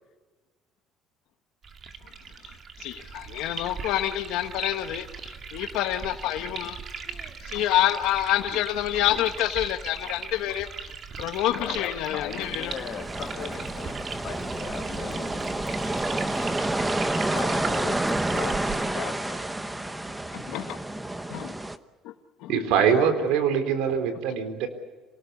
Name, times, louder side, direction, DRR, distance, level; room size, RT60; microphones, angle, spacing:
sound 1, 1.6-18.9, right 5 dB, 35° right, 2.3 m, -39 dB
voice 1, 2.8-6.8 7.4-10.7 11.2-12.7 20.3-20.8 21.3-21.5 22.0-22.1 22.4-22.5, left 13 dB, 75° left, 7 dB, 1.1 m, -27 dB
voice 2, 11.6-15.8 17.3-19.4 22.8-23.1, left 8 dB, 45° left, 2 dB, 2.4 m, -38 dB
sound 2, 12.4-21.8, right 1 dB, 10° right, 0.9 m, -29 dB
voice 3, 22.5-24.7, right 7 dB, 85° right, 8 dB, 3.8 m, -23 dB
27.0 x 19.0 x 8.2 m, 1.3 s
cardioid pair, 160°, 0 cm